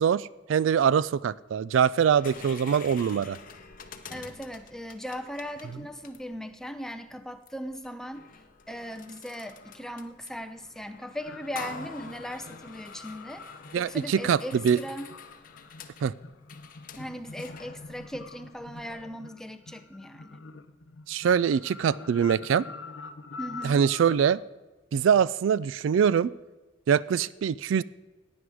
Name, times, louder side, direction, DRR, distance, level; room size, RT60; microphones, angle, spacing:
voice 1, 0.0-3.4 13.7-14.4 14.6-14.8 16.0-16.1 21.1-22.6 23.6-24.4 24.9-26.3 26.9-27.8, right 7 dB, 75° right, 20 dB, 0.3 m, -23 dB
sound 1, 2.1-19.0, left 5 dB, 45° left, 0.9 m, -47 dB
voice 2, 4.1-8.2 8.7-13.4 13.7-15.1 17.0-20.4 23.4-23.9, equal, 5° left, 9 dB, 0.6 m, -38 dB
sound 2, 11.2-24.2, left 4 dB, 75° left, 0.8 m, -46 dB
15.5 x 9.5 x 4.9 m, 1.2 s
head